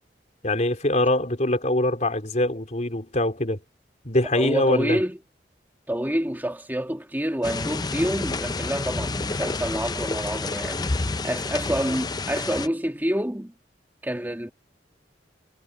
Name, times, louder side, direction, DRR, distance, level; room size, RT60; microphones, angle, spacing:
voice 1, 0.4-3.6 4.0-5.0, left 1 dB, 45° left, 3.8 m, -23 dB
voice 2, 4.3-5.2 5.9-10.9 11.2-13.5 14.0-14.5, equal, 10° right, 2.2 m, -27 dB
sound 1, 7.4-12.7, left 3 dB, 25° left, 0.5 m, -29 dB
head